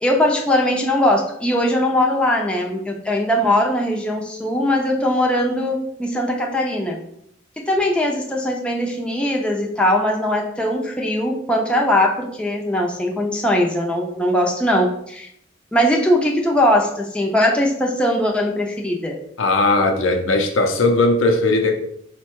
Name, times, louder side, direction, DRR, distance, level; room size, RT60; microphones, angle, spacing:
voice 1, 0.0-7.0 7.7-15.3 15.7-19.2, left 1 dB, 5° left, -1 dB, 0.5 m, -20 dB
voice 2, 19.4-21.7, left 2 dB, 70° left, 5 dB, 0.6 m, -18 dB
4.4 x 2.2 x 4.5 m, 0.71 s
head